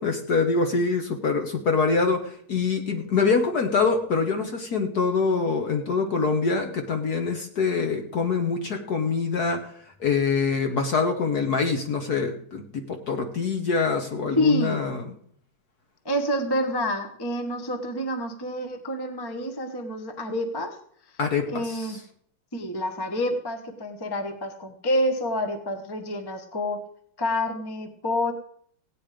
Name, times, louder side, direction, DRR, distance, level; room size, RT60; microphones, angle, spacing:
voice 1, 0.0-9.7 10.0-15.0 21.2-22.0, left 4 dB, 50° left, 5 dB, 1.5 m, -25 dB
voice 2, 14.4-14.8 16.0-20.8 21.5-22.0 22.5-26.8 27.2-28.3, left 1 dB, 15° left, 5 dB, 1.1 m, -28 dB
16.5 x 9.2 x 5.1 m, 0.63 s
omnidirectional pair, 2.3 m